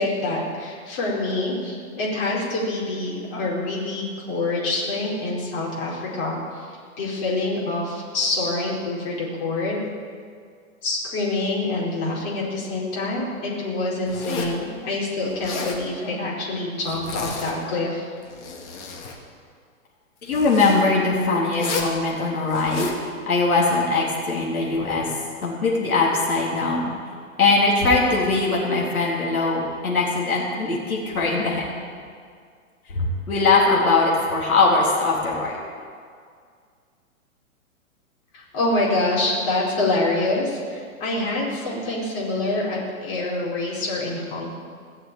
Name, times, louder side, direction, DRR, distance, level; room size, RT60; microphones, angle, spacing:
voice 1, 0.0-9.8 10.8-18.1 38.3-44.5, left 2 dB, 40° left, -4 dB, 4.7 m, -26 dB
Zipper (clothing), 14.1-14.6 15.3-15.8 16.8-17.6 18.2-19.2 20.3-20.8 21.5-22.0 22.5-23.0, left 4 dB, 55° left, 2.6 m, -32 dB
voice 2, 20.2-22.9 23.3-25.1 25.4-26.9 27.4-31.6 32.9-35.6, left 3 dB, 85° left, -4 dB, 3.9 m, -21 dB
18.5 x 6.8 x 9.0 m, 2.1 s
hypercardioid pair, 140°, 42 cm